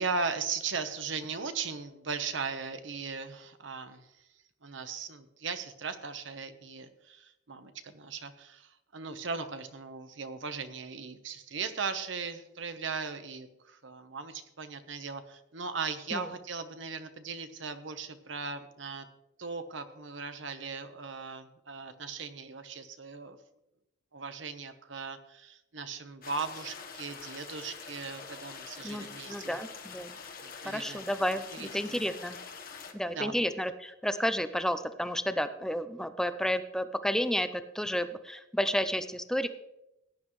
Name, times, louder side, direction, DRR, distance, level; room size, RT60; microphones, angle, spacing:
voice 1, 0.0-4.1 4.6-19.1 19.4-23.4 24.1-29.6 30.4-31.0 31.5-32.2 33.1-33.5, right 5 dB, 70° right, 9 dB, 1.0 m, -38 dB
sound 1, 26.2-32.9, left 5 dB, 50° left, 1.3 m, -45 dB
voice 2, 28.8-30.1 30.6-32.4 32.9-39.5, equal, 5° left, 10 dB, 0.5 m, -31 dB
17.0 x 10.0 x 3.1 m, 0.87 s
head